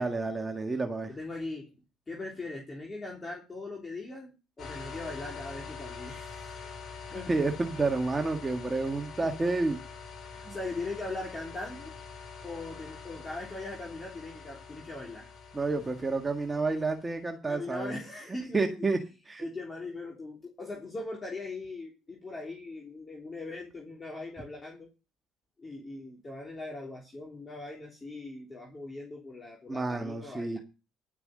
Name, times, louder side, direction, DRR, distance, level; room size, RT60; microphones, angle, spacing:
voice 1, 0.0-1.1 7.3-9.8 10.4-10.6 15.5-18.0 18.5-19.0 19.3-19.5 29.7-30.6, right 3 dB, 25° right, 3 dB, 1.8 m, -30 dB
voice 2, 1.1-1.7 2.1-6.8 7.1-7.3 10.3-11.9 12.4-15.3 17.5-18.9 19.4-24.9 25.6-30.6, left 2 dB, 30° left, -1 dB, 3.5 m, -40 dB
sound 1, 4.6-17.2, left 5 dB, 50° left, 4.0 m, -45 dB
11.0 x 6.7 x 6.6 m, 0.31 s
hypercardioid pair, 60°, 0 cm